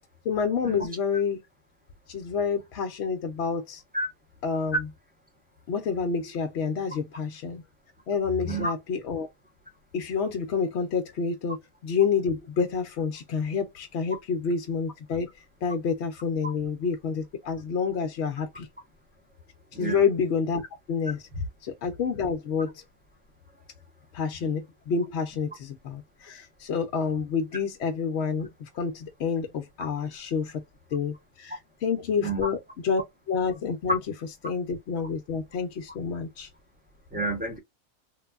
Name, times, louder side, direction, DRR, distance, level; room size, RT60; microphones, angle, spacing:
voice 1, 0.2-1.4 2.1-3.8 4.4-4.9 5.7-7.6 8.1-9.3 9.9-18.7 19.7-21.3 21.6-22.8 24.1-30.6 30.9-34.0 34.4-36.5, left 5 dB, 60° left, 0.8 m, -28 dB
voice 2, 37.1-37.6, right 2 dB, 10° right, 0.7 m, -30 dB
3.2 x 2.2 x 2.3 m
omnidirectional pair, 1.4 m